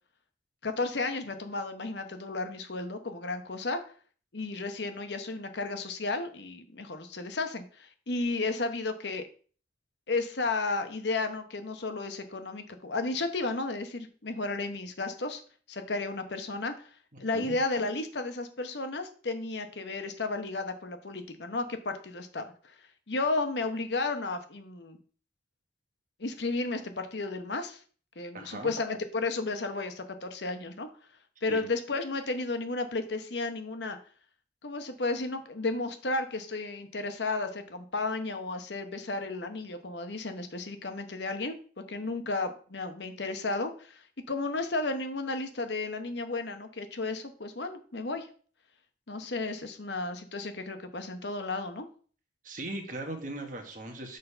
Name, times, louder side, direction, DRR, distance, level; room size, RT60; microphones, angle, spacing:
voice 1, 0.6-3.8 4.3-9.3 10.1-15.4 15.7-16.9 17.2-22.7 23.1-25.0 26.2-27.8 28.2-30.9 31.4-34.0 34.6-41.6 41.9-48.3 49.1-51.9, left 3 dB, 70° left, 7 dB, 1.0 m, -33 dB
voice 2, 28.3-28.7 31.5-31.6 52.4-54.2, right 2 dB, 45° right, 4 dB, 1.4 m, -38 dB
6.6 x 4.0 x 5.5 m, 0.42 s
head